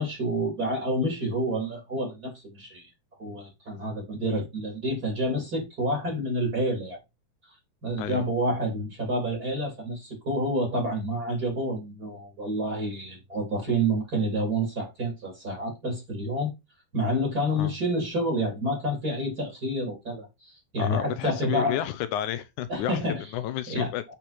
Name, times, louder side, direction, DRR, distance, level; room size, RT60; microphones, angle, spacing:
voice 1, 0.0-2.9 3.2-7.0 7.8-16.5 16.9-21.8 22.7-23.2 23.7-23.9, right 1 dB, 30° right, 3.2 m, -28 dB
voice 2, 20.8-23.0 23.3-24.0, left 11 dB, 80° left, 1.9 m, -31 dB
8.4 x 4.5 x 4.2 m
omnidirectional pair, 3.9 m